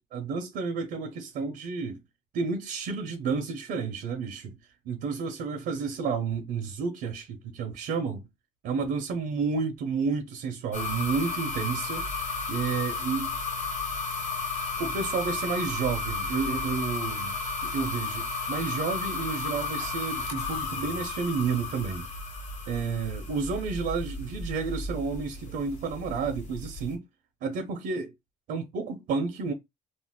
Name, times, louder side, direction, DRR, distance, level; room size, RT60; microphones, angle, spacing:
voice 1, 0.0-2.0 2.3-4.6 4.8-8.3 8.6-13.4 14.8-22.1 22.7-27.0 27.4-28.1 28.5-29.5, right 5 dB, 70° right, 0.6 m, -31 dB
sound 1, 10.7-26.9, left 3 dB, 45° left, 1.1 m, -33 dB
2.5 x 2.1 x 3.5 m
cardioid pair, 110°, 17 cm